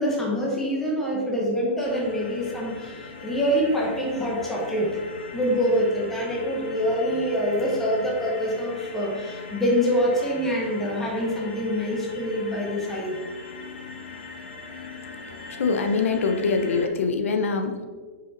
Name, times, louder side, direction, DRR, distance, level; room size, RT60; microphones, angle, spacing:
voice 1, 0.0-5.0 5.3-13.2, equal, 5° left, -3 dB, 0.8 m, -25 dB
sound 1, 1.8-16.9, left 4 dB, 55° left, 1.1 m, -41 dB
voice 2, 15.6-17.8, left 4 dB, 85° left, 5 dB, 0.8 m, -24 dB
5.8 x 4.8 x 3.9 m, 1.5 s
hypercardioid pair, 175°, 7 cm